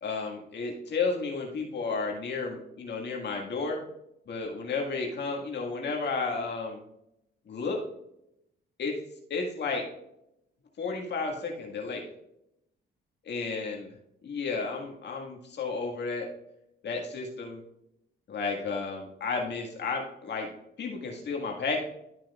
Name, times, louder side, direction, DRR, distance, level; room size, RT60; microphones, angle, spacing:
voice 1, 0.0-3.8 4.3-6.8 7.5-7.8 8.8-8.9 9.3-9.9 10.8-12.0 13.2-13.9 14.2-16.3 16.8-17.6 18.3-20.5 20.8-21.8, left 4 dB, 60° left, 0 dB, 1.9 m, -32 dB
13.0 x 6.0 x 2.4 m, 0.81 s
cardioid pair, 90°, 20 cm